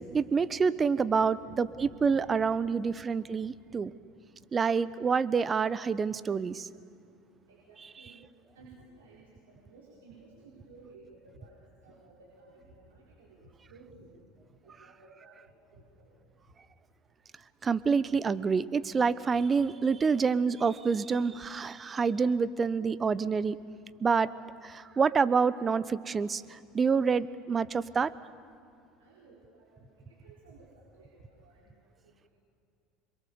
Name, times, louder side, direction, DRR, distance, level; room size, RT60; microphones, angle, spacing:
voice 1, 0.1-1.7 2.0-3.9 4.5-6.7 17.6-23.6 24.0-24.3 24.6-28.1, right 5 dB, 30° right, 17 dB, 0.9 m, -27 dB
voice 2, 1.5-1.9 2.4-2.5 7.5-8.2 8.5-14.1 14.6-15.4 15.7-16.1 29.0-31.8, right 3 dB, 80° right, -5 dB, 4.6 m, -55 dB
27.5 x 22.5 x 7.1 m, 2.5 s
hypercardioid pair, 75°, 0 cm